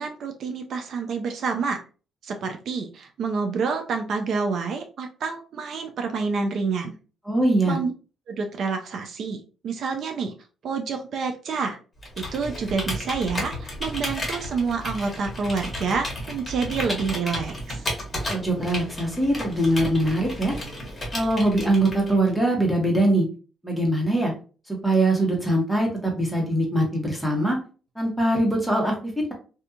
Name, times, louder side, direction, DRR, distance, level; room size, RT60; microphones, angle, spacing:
voice 1, 0.0-1.8 2.2-6.9 7.7-7.9 8.3-9.4 9.6-10.3 10.6-11.8 12.2-17.8, right 5 dB, 65° right, 5 dB, 0.4 m, -28 dB
voice 2, 7.3-7.8 18.3-20.5 21.1-23.3 23.6-24.3 24.8-27.6 28.0-28.9, right 1 dB, ahead, -1 dB, 1.1 m, -22 dB
Computer keyboard, 12.0-22.3, left 1 dB, 25° left, 1.2 m, -33 dB
2.5 x 2.4 x 2.7 m, 0.37 s
cardioid pair, 90°, 0 cm